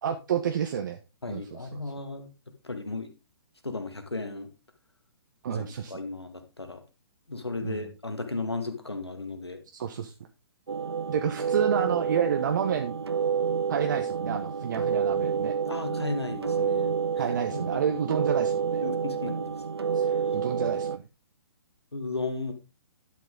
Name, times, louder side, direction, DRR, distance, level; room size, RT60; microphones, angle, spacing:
voice 1, 0.0-1.0 1.3-1.8 5.4-5.9 7.6-7.9 9.7-10.1 11.1-12.9 13.7-15.5 17.2-18.8 19.9-20.0 20.3-21.0, right 8 dB, 50° right, 6 dB, 1.0 m, -29 dB
voice 2, 1.2-2.3 2.6-3.1 3.6-4.5 5.5-6.8 7.3-9.6 15.6-17.3 18.8-19.5 20.0-20.1 21.9-22.5, left 3 dB, 85° left, 7 dB, 2.1 m, -35 dB
sound 1, 10.7-21.0, right 6 dB, 75° right, 0.6 m, -29 dB
11.5 x 6.6 x 3.8 m, 0.28 s
figure-of-eight pair, 125°, 13 cm